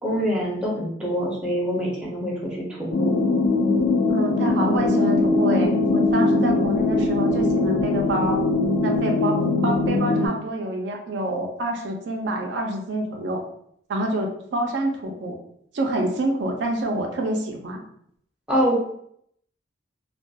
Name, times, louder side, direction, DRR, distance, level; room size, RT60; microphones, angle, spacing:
voice 1, 0.0-3.1 18.5-18.8, equal, 5° right, -5 dB, 0.5 m, -25 dB
sound 1, 2.9-10.3, left 2 dB, 65° left, 0.4 m, -21 dB
voice 2, 4.1-8.4 8.8-13.4 13.9-15.4 15.7-17.8, right 1 dB, 65° right, 2 dB, 0.4 m, -27 dB
2.3 x 2.2 x 2.6 m, 0.68 s
head